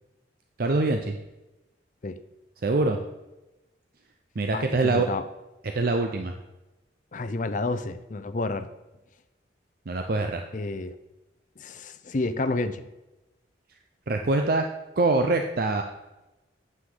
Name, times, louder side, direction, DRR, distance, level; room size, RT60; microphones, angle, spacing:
voice 1, 0.6-1.2 2.6-3.0 4.4-5.1 5.7-6.3 9.9-10.5 14.1-14.7 15.0-15.8, right 2 dB, 55° right, 4 dB, 0.6 m, -24 dB
voice 2, 4.5-5.2 7.1-8.7 10.5-11.0 11.6-12.8, left 2 dB, 45° left, 11 dB, 0.6 m, -30 dB
8.9 x 7.8 x 3.8 m, 1.0 s
head